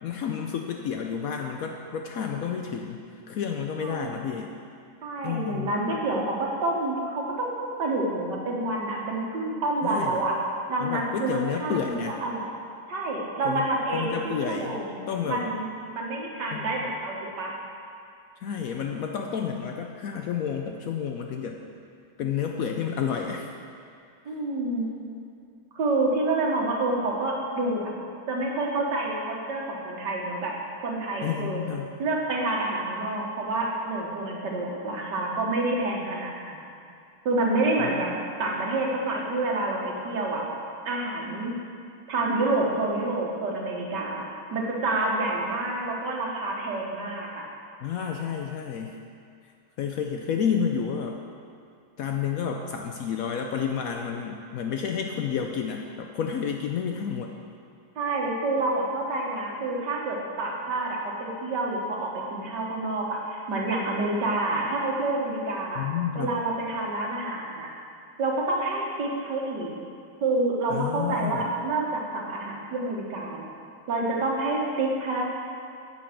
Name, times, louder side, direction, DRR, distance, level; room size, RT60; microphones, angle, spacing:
voice 1, 0.0-4.5 5.2-5.7 9.8-10.2 10.8-12.2 13.4-14.8 15.1-15.5 16.5-16.8 18.4-21.6 22.2-23.5 31.2-32.0 37.8-37.9 47.8-49.0 49.8-51.2 52.0-57.3 65.8-66.3 70.7-71.5, left 7 dB, 90° left, 3 dB, 0.7 m, -30 dB
voice 2, 3.8-4.2 5.0-10.4 10.7-12.5 12.9-15.7 15.9-17.5 24.3-24.9 25.8-27.9 28.3-30.5 30.8-31.6 32.0-36.6 37.3-38.1 38.4-40.4 40.9-41.5 42.1-44.2 44.5-47.4 58.0-65.9 66.2-67.7 68.2-69.7 70.2-73.5 73.9-75.3, right 2 dB, 60° right, -2 dB, 2.0 m, -28 dB
9.5 x 7.3 x 5.9 m, 2.4 s
omnidirectional pair, 2.1 m